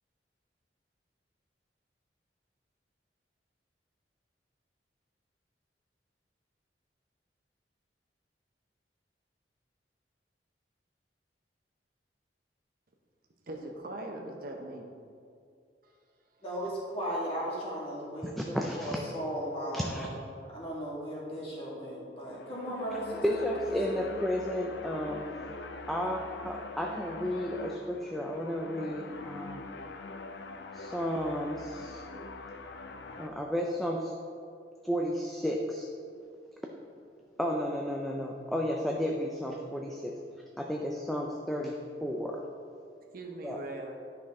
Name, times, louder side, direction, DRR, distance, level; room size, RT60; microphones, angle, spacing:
voice 1, 13.5-14.9 15.8-15.9 43.1-43.9, right 1 dB, 55° right, 2 dB, 0.9 m, -40 dB
voice 2, 16.4-20.1 20.5-24.0, equal, 35° left, -5 dB, 2.1 m, -37 dB
voice 3, 18.2-19.0 19.7-20.1 23.2-25.2 25.9-29.6 30.7-32.0 33.2-34.1 34.8-35.9 37.4-40.1 40.6-42.4 43.4-43.6, equal, ahead, 0 dB, 0.4 m, -32 dB
sound 1, 22.2-33.3, left 3 dB, 80° left, 0.5 m, -43 dB
10.0 x 5.8 x 3.7 m, 2.3 s
head